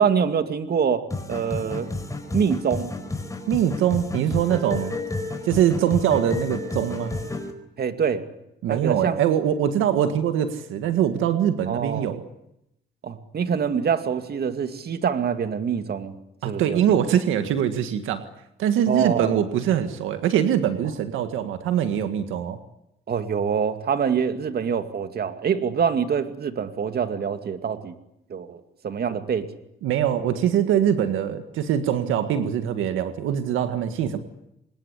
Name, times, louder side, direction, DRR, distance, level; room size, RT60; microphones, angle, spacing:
voice 1, 0.0-1.9 2.3-2.9 7.8-8.2 8.7-9.2 11.7-12.1 13.0-16.1 16.4-17.0 18.9-19.3 23.1-27.9 28.3-29.5, right 7 dB, 50° right, 8 dB, 2.5 m, -25 dB
sound 1, 1.1-7.5, left 2 dB, 15° left, 4.4 m, -31 dB
voice 2, 3.5-5.0 5.4-7.2 8.6-12.2 16.4-18.2 18.6-22.6 29.8-34.2, right 9 dB, 90° right, 8 dB, 1.9 m, -23 dB
25.0 x 21.0 x 10.0 m, 0.82 s
cardioid pair, 90°, 20 cm